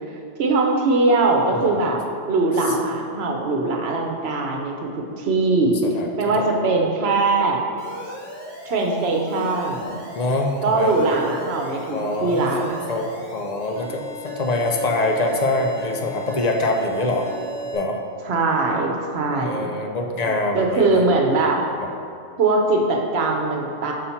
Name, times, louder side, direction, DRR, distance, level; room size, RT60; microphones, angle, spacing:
voice 1, 0.1-2.0 2.3-5.8 6.2-7.6 8.6-10.0 10.6-12.9 18.2-19.7 20.5-21.6 22.4-23.9, right 3 dB, 60° right, 1 dB, 1.0 m, -21 dB
Alarm, 7.8-17.8, right 1 dB, 80° left, 1.9 m, -36 dB
voice 2, 10.2-11.1 11.9-12.4 12.9-17.3 17.7-18.0 19.4-21.0 21.3-21.4, left 2 dB, 50° left, 3 dB, 0.5 m, -24 dB
5.8 x 4.2 x 5.7 m, 2.5 s
omnidirectional pair, 1.3 m